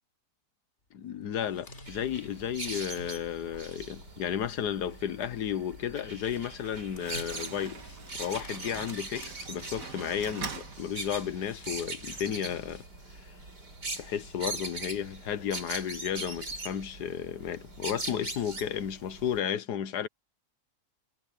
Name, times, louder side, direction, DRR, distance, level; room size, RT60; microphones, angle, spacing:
voice 1, 0.9-7.8 8.1-12.8 13.2-13.3 14.0-20.1, left 9 dB, 80° left, 1.5 m, -33 dB
sound 1, 1.1-12.9, left 1 dB, 40° left, 4.0 m, -52 dB
sound 2, 1.9-19.4, right 2 dB, 80° right, 5.8 m, -41 dB
Slam, 6.4-11.5, right 5 dB, 55° right, 2.1 m, -44 dB
omnidirectional pair, 1.7 m